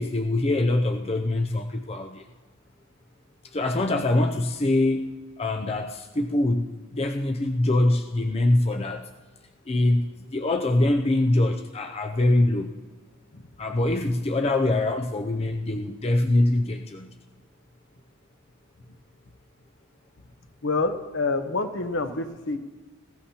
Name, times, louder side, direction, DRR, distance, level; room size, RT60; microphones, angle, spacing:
voice 1, 0.0-2.2 3.5-9.1 9.7-12.8 13.6-17.2, left 2 dB, 30° left, 4 dB, 0.5 m, -24 dB
voice 2, 20.6-22.6, left 3 dB, 60° left, 7 dB, 1.0 m, -27 dB
19.0 x 16.0 x 2.9 m, 1.2 s
head